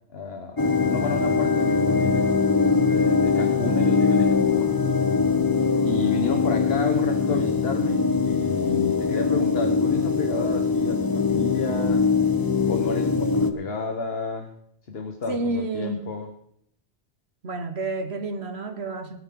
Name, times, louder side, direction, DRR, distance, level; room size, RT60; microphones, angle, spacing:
voice 1, 0.1-2.3 2.6-4.8 5.8-12.0 12.6-14.5 14.9-16.3, left 4 dB, 70° left, 1.5 m, -31 dB
sound 1, 0.6-13.5, left 4 dB, 25° left, 0.8 m, -22 dB
voice 2, 15.3-16.1 17.4-19.2, right 2 dB, 85° right, 1.7 m, -30 dB
22.0 x 9.6 x 3.9 m
omnidirectional pair, 1.1 m